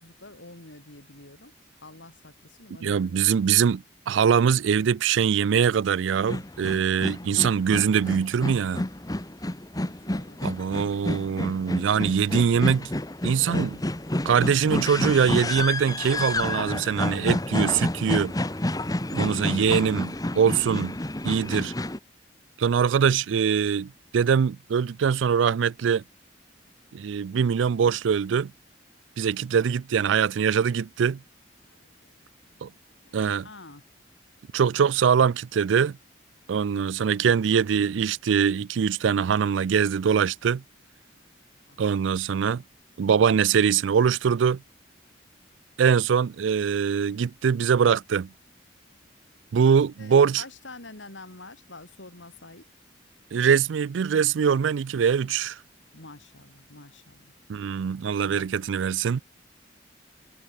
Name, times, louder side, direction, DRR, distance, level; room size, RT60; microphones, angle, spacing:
voice 1, 0.0-1.5 1.8-3.5 9.7-10.9 31.7-32.8 33.0-33.8 41.1-41.3 41.7-41.8 49.4-49.6 50.0-52.6 55.9-57.4 58.2-58.5, left 2 dB, 85° left, 4.5 m, -48 dB
voice 2, 2.8-8.8 10.4-12.9 13.2-13.8 14.3-18.3 19.1-21.0 21.2-21.7 22.6-26.0 26.9-28.5 29.2-31.2 32.6-32.7 33.1-33.5 34.5-36.0 36.5-40.6 41.8-42.6 43.0-44.6 45.8-48.3 49.5-50.4 53.3-55.6 57.5-59.2, right 7 dB, 90° right, 0.4 m, -23 dB
sound 1, 6.1-22.0, left 1 dB, 20° left, 1.2 m, -29 dB
head